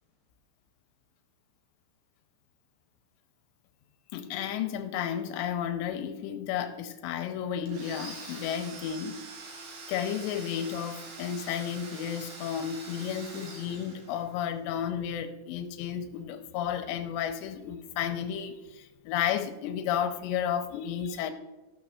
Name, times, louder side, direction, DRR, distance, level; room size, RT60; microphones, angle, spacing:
voice 1, 4.1-9.3 9.9-21.3, left 9 dB, 85° left, 7 dB, 2.6 m, -32 dB
Domestic sounds home sounds, 7.7-14.5, right 3 dB, 70° right, 4.1 m, -45 dB
15.5 x 6.6 x 3.5 m, 1.1 s
omnidirectional pair, 5.6 m